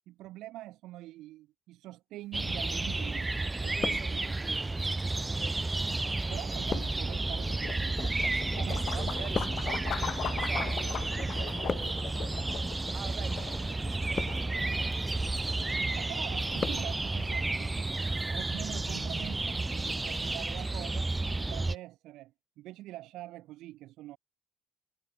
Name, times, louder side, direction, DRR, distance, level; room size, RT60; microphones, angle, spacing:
voice 1, 0.1-4.3 6.3-8.9 15.9-21.1 21.4-24.2, right 16 dB, 90° right, 1.6 m, -45 dB
Birds Singing, 2.3-21.8, right 2 dB, 15° right, 0.4 m, -32 dB
sound 1, 2.7-3.3 3.5-4.6 5.3-10.9 11.2-12.2 12.9-13.2 13.9-14.7 15.1-15.6 15.9-16.9 17.2-17.3, left 5 dB, 30° left, 0.6 m, -39 dB
voice 2, 3.6-4.8 5.2-5.7 8.6-12.1 12.9-16.0, right 10 dB, 55° right, 7.2 m, -48 dB
sound 2, 6.4-20.5, left 10 dB, 60° left, 3.8 m, -42 dB
cardioid pair, 130°, 0 cm